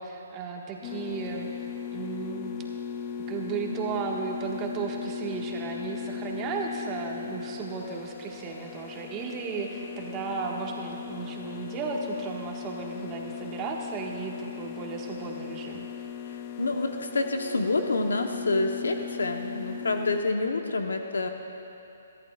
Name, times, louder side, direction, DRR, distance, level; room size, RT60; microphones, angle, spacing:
voice 1, 0.0-2.5 3.3-15.9, right 5 dB, 25° right, -1 dB, 1.5 m, -35 dB
sound 1, 0.8-20.2, left 7 dB, 35° left, 0.5 m, -38 dB
voice 2, 16.3-21.3, left 3 dB, 90° left, 5 dB, 0.9 m, -28 dB
22.5 x 14.0 x 2.4 m, 2.8 s
hypercardioid pair, 150°, 0 cm